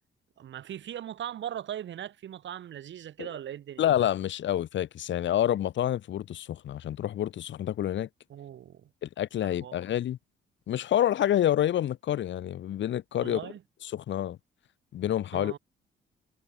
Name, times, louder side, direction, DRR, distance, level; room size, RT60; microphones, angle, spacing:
voice 1, 0.4-3.8 8.3-8.9 9.4-9.8 13.2-13.6 15.3-15.6, right 10 dB, 70° right, 7.7 m, -39 dB
voice 2, 3.8-8.1 9.0-10.2 10.7-13.4 13.8-14.4 14.9-15.6, left 11 dB, 70° left, 1.7 m, -28 dB
cardioid pair, 90°, 20 cm